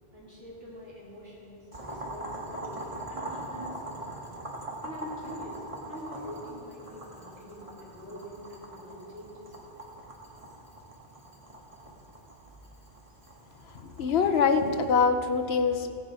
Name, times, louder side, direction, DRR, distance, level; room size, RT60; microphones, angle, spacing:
voice 1, 0.1-4.2 4.8-9.5, equal, 85° right, -7 dB, 3.9 m, -44 dB
Boiling, 1.7-15.0, right 1 dB, 35° right, 1.9 m, -42 dB
voice 2, 13.8-15.9, left 5 dB, 80° left, 8 dB, 1.1 m, -24 dB
16.5 x 10.5 x 4.8 m, 2.7 s
omnidirectional pair, 1.0 m